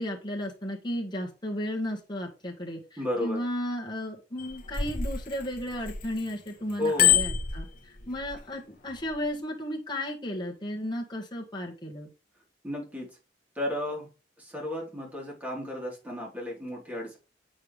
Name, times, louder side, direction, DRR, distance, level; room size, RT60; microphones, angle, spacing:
voice 1, 0.0-12.1, left 1 dB, 25° left, -1 dB, 1.7 m, -34 dB
voice 2, 3.0-3.4 6.8-7.2 12.6-13.1 13.6-14.1 14.4-17.2, left 1 dB, 10° right, -3 dB, 3.9 m, -33 dB
Bicycle bell, 4.4-6.3 6.7-8.4 9.0-9.2, left 9 dB, 50° left, 1.0 m, -26 dB
8.2 x 5.4 x 3.4 m, 0.31 s
head